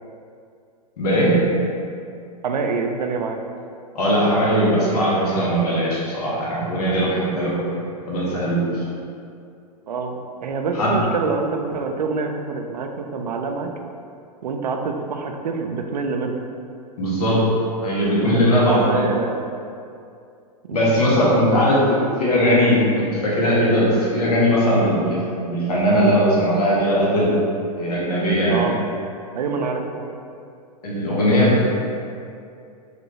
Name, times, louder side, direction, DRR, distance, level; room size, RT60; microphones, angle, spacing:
voice 1, 1.0-1.4 3.9-7.8 8.0-8.6 10.7-10.9 17.0-17.4 17.8-19.0 20.7-21.8 22.2-27.3 27.8-28.7 30.8-31.6, equal, 70° left, -6 dB, 1.2 m, -19 dB
voice 2, 2.4-3.4 9.9-13.7 14.4-16.3 18.2-18.4 18.7-19.4 20.7-21.6 28.5-28.8 29.3-30.1, right 4 dB, 85° right, 4 dB, 0.4 m, -26 dB
3.4 x 2.6 x 3.0 m, 2.4 s
hypercardioid pair, 115°, 21 cm